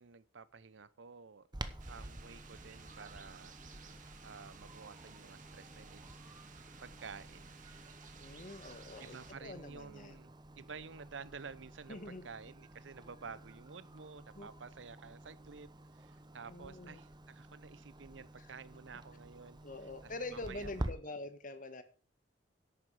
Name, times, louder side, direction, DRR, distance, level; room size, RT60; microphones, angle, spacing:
voice 1, 0.0-1.5 1.9-3.9 4.2-7.6 9.0-15.7 15.9-19.6 20.0-20.9, right 5 dB, 85° right, 0.7 m, -51 dB
Clock, 1.5-20.9, right 1 dB, 25° right, 0.8 m, -50 dB
sound 1, 1.8-9.3, right 4 dB, 45° right, 1.7 m, -56 dB
voice 2, 8.2-10.2 11.9-12.3 14.3-14.5 16.5-17.0 18.4-18.5 19.6-21.8, left 2 dB, 45° left, 1.4 m, -45 dB
11.0 x 8.9 x 4.9 m
head